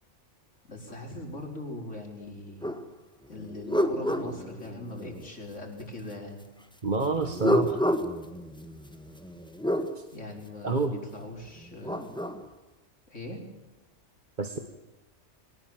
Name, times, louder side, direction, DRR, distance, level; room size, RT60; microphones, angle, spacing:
voice 1, 0.7-2.7 3.3-6.4 10.1-12.1 13.1-13.4, left 2 dB, 85° left, 2 dB, 5.3 m, -40 dB
sound 1, 2.6-2.8 3.3-5.3 7.1-9.9 11.6-12.4, equal, 5° left, 1.7 m, -30 dB
voice 2, 6.8-7.8 10.6-10.9 14.4-14.6, right 3 dB, 40° right, 6 dB, 1.6 m, -28 dB
23.5 x 19.0 x 7.5 m, 1.0 s
omnidirectional pair, 1.2 m